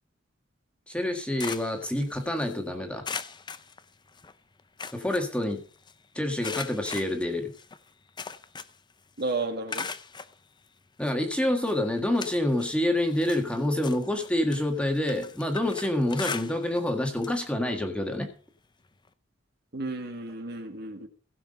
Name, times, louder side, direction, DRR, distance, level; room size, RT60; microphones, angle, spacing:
voice 1, 0.9-3.0 4.9-5.6 6.2-7.5 11.0-18.3, left 1 dB, 5° left, 4 dB, 1.7 m, -27 dB
sound 1, 1.0-2.6 3.0-4.3 4.6-5.9 6.4-8.9 9.2-10.3 11.0-11.1 11.6-12.8 13.1-16.9 17.2-17.4 17.8-17.9 19.1-19.2, left 5 dB, 25° left, 0.6 m, -39 dB
voice 2, 9.2-9.9 19.7-21.1, right 3 dB, 55° right, 6 dB, 2.1 m, -32 dB
16.5 x 6.0 x 5.3 m, 0.39 s
head